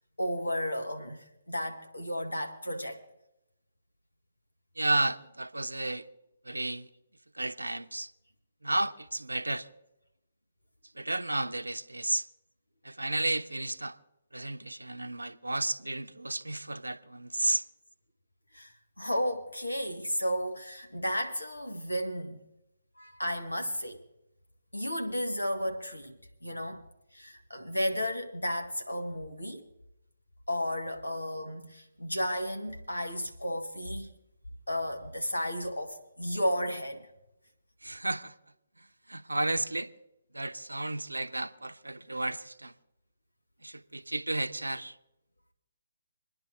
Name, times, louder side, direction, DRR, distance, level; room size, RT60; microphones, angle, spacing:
voice 1, 0.2-3.0 18.5-18.7 19.0-22.4 23.0-24.0 24.7-26.1 26.4-26.8 27.1-29.6 30.5-34.1 34.7-37.1, equal, 85° left, 1.6 m, -33 dB
voice 2, 4.8-6.0 6.4-6.9 7.3-8.1 8.6-9.7 10.9-12.3 12.8-14.0 14.3-17.6 37.8-38.3 38.8-39.9 40.3-42.7 43.6-45.0, right 2 dB, 80° right, 0.7 m, -32 dB
26.0 x 10.5 x 2.6 m
figure-of-eight pair, 140°, 0 cm